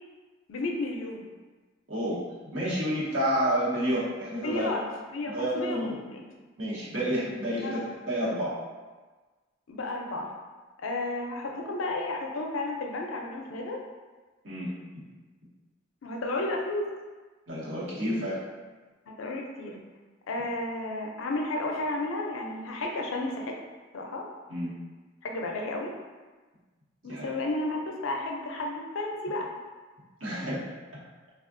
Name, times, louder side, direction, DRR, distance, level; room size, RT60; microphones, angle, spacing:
voice 1, 0.5-1.2 4.4-6.2 7.6-7.8 9.7-10.3 10.8-13.8 16.0-16.9 19.2-19.8 20.3-23.6 23.9-24.3 25.2-25.9 27.0-29.5, left 2 dB, 75° left, 1 dB, 0.5 m, -32 dB
voice 2, 2.5-4.6 5.3-6.0 6.6-8.5 14.4-14.7 17.5-18.4 24.5-24.7 27.0-27.3 30.2-30.6, equal, 75° right, -8 dB, 1.1 m, -29 dB
3.3 x 2.3 x 2.5 m, 1.3 s
head